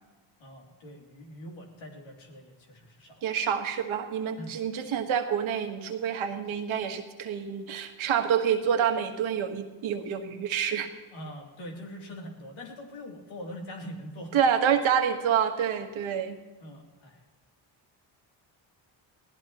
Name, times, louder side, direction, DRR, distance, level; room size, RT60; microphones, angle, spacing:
voice 1, 0.4-3.2 4.4-4.6 11.1-14.4 16.6-17.2, equal, 75° left, 0 dB, 3.0 m, -43 dB
voice 2, 3.2-10.9 14.3-16.4, right 8 dB, 80° right, 6 dB, 1.5 m, -27 dB
21.0 x 15.0 x 3.0 m, 1.3 s
cardioid pair, 75°, 47 cm